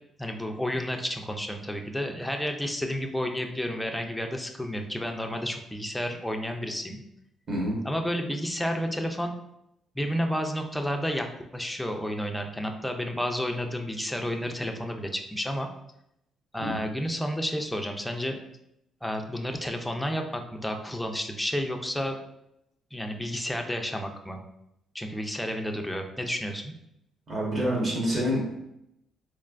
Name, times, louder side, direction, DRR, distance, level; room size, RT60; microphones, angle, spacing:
voice 1, 0.2-7.0 7.8-9.3 10.0-11.3 11.5-15.7 16.5-18.4 19.0-22.2 22.9-24.4 24.9-26.7, equal, 5° left, 4 dB, 0.4 m, -31 dB
voice 2, 27.3-28.6, equal, 40° right, -3 dB, 1.2 m, -27 dB
3.8 x 3.2 x 2.4 m, 0.82 s
cardioid pair, 135°, 0 cm